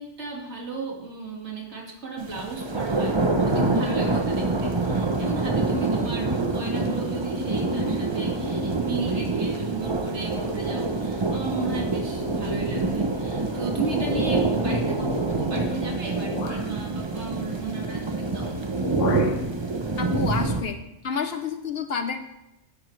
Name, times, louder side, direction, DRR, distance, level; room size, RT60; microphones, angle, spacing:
voice 1, 0.0-18.5, right 3 dB, 60° right, -1 dB, 2.4 m, -35 dB
sound 1, 2.2-20.6, right 2 dB, 25° right, 0.7 m, -26 dB
sound 2, 14.0-14.8 15.6-15.7 16.3-16.7 18.1-18.4 18.7-19.5, left 4 dB, 75° left, 1.3 m, -34 dB
voice 2, 20.0-20.8 21.0-22.3, left 6 dB, 55° left, 8 dB, 0.9 m, -29 dB
12.0 x 11.0 x 3.2 m, 0.90 s
omnidirectional pair, 1.3 m